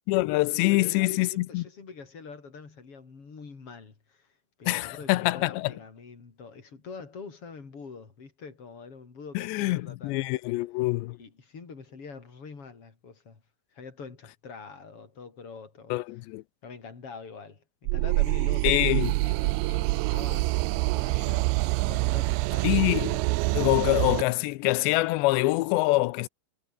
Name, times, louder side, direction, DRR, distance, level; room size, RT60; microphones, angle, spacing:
voice 1, 0.1-1.6 4.7-5.7 9.3-11.2 15.9-16.4 18.6-19.1 22.6-23.2 23.5-26.3, left 20 dB, 90° left, 3.0 m, -25 dB
voice 2, 0.7-4.3 4.6-10.2 11.2-13.4 13.7-16.2 16.6-19.0 19.2-21.5 21.9-22.8, left 5 dB, 35° left, 4.5 m, -45 dB
sound 1, 17.9-24.2, right 24 dB, 90° right, 2.2 m, -26 dB
omnidirectional pair, 4.9 m